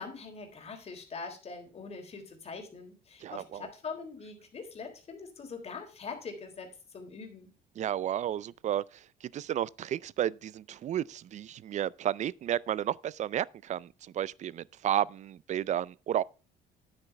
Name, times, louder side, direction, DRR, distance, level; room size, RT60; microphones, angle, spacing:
voice 1, 0.0-7.5, left 4 dB, 40° left, 3.5 m, -43 dB
voice 2, 3.2-3.7 7.8-16.2, right 11 dB, 45° right, 0.4 m, -32 dB
9.9 x 8.7 x 3.3 m
cardioid pair, 110°, 17 cm